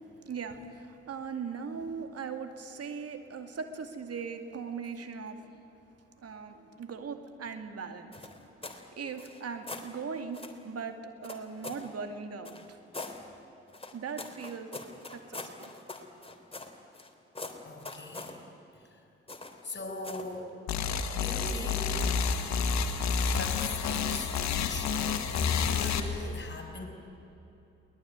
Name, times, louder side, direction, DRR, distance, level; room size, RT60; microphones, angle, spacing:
voice 1, 0.2-5.4 6.2-8.3 8.7-12.8 13.9-14.7 15.1-15.7, right 5 dB, 55° right, 7 dB, 2.4 m, -39 dB
sound 1, 8.1-8.8 9.1-9.9 10.3-10.6 11.2-11.9 12.4-13.2 13.7-17.1 17.3-18.4 19.3-19.6 20.0-20.3, left 3 dB, 20° left, 3.4 m, -42 dB
voice 2, 17.6-18.4 18.8-19.0 19.6-20.5 21.1-22.2 23.2-24.3 24.7-26.9, left 2 dB, 40° left, 4 dB, 5.3 m, -41 dB
sound 2, 20.7-26.0, left 6 dB, 70° left, 1.7 m, -29 dB
22.5 x 19.5 x 9.6 m, 2.9 s
hypercardioid pair, 45°, 29 cm